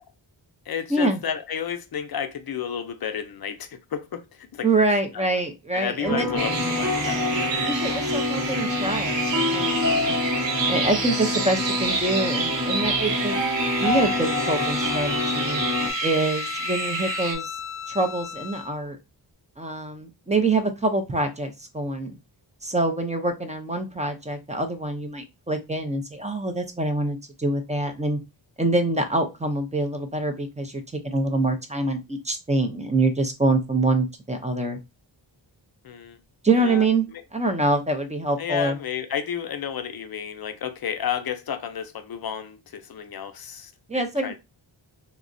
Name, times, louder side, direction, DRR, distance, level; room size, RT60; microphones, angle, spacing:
voice 1, 0.7-4.7 5.1-5.3 5.7-7.6 10.9-11.1 35.8-36.2 36.6-36.9 37.1-37.2 38.4-44.3, left 8 dB, 55° left, 0.5 m, -32 dB
voice 2, 4.6-6.4 7.6-9.2 9.5-10.2 10.7-13.4 13.8-15.6 16.0-17.5 17.9-19.0 19.6-22.1 22.6-28.2 28.6-34.8 36.4-38.8 43.9-44.3, right 2 dB, 15° right, 0.4 m, -25 dB
sound 1, 6.0-15.9, left 2 dB, 40° right, 0.8 m, -27 dB
sound 2, 6.4-17.3, right 4 dB, 70° right, 0.7 m, -29 dB
Bowed string instrument, 13.5-18.8, left 7 dB, 10° left, 0.8 m, -35 dB
3.6 x 2.0 x 2.5 m
wide cardioid pair, 120°, 46 cm